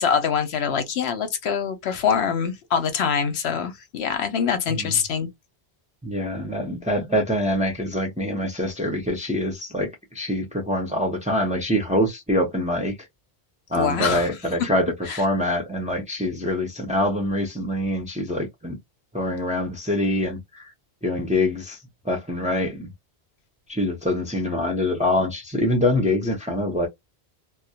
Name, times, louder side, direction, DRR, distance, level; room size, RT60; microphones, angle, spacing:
voice 1, 0.0-5.3 13.7-14.3 15.1-15.2, left 7 dB, 75° left, 0.9 m, -24 dB
voice 2, 6.0-9.9 10.1-12.9 13.7-14.9 15.1-18.8 19.1-20.7 21.0-21.8 22.0-22.9 23.7-26.9, left 1 dB, 10° right, 0.5 m, -24 dB
2.3 x 2.0 x 2.7 m
omnidirectional pair, 1.1 m